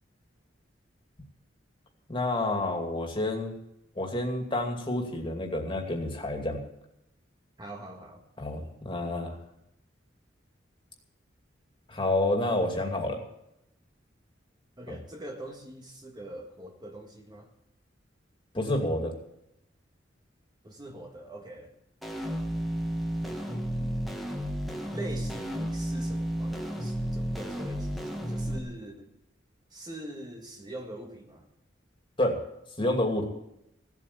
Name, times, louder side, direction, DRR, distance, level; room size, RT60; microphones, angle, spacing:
voice 1, 2.1-3.6 4.0-6.6 8.4-9.4 11.9-13.2 14.9-15.0 18.5-19.1 32.2-32.4 32.8-33.2, left 1 dB, 30° left, 3 dB, 2.5 m, -29 dB
voice 2, 7.6-8.2 14.8-17.5 20.6-21.7 23.3-24.0 24.9-29.1 29.7-31.5, right 1 dB, 25° right, 2 dB, 1.7 m, -43 dB
sound 1, 22.0-28.6, equal, ahead, 1.7 m, -32 dB
16.0 x 8.4 x 8.5 m, 0.82 s
head